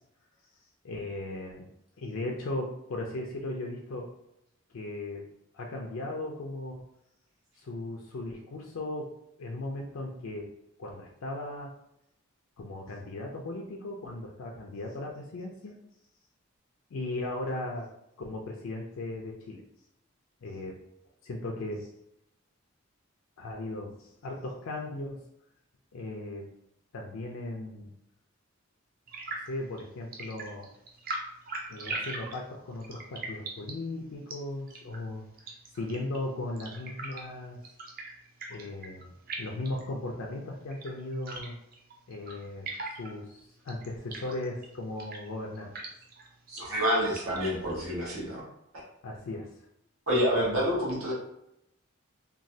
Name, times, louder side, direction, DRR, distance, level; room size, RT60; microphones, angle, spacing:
voice 1, 0.8-1.7 2.0-4.1 4.7-5.2 5.5-6.8 7.6-9.1 9.4-10.5 10.8-11.7 12.6-15.7 16.9-17.9 18.2-19.6 20.4-20.8 21.2-21.9 23.4-25.2 25.9-26.5 26.9-27.9 29.3-30.7 31.7-35.2 35.7-37.6 38.5-39.1 39.4-41.6 42.1-45.7 49.0-49.5, left 2 dB, 75° left, 0 dB, 0.4 m, -37 dB
sound 1, 29.1-48.2, right 2 dB, 45° right, 0.4 m, -43 dB
voice 2, 46.5-48.5 50.1-51.1, equal, 90° right, -4 dB, 1.2 m, -28 dB
3.0 x 2.3 x 2.7 m, 0.81 s
head